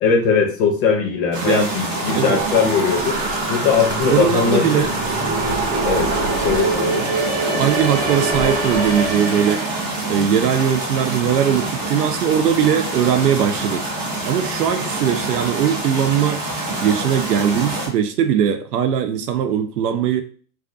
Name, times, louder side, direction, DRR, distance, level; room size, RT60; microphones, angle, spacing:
voice 1, 0.0-3.2 3.5-4.8 5.9-6.1 6.4-7.1, left 6 dB, 35° left, 2 dB, 0.6 m, -19 dB
sound 1, 1.3-17.9, right 2 dB, 20° right, 0.4 m, -26 dB
sound 2, 1.6-9.9, right 3 dB, 40° right, 0.7 m, -24 dB
voice 2, 4.1-4.9 7.6-9.6 10.1-13.8 14.2-16.4 16.8-20.2, right 8 dB, 80° right, 7 dB, 0.6 m, -20 dB
2.5 x 2.4 x 2.5 m, 0.43 s
hypercardioid pair, 130°, 47 cm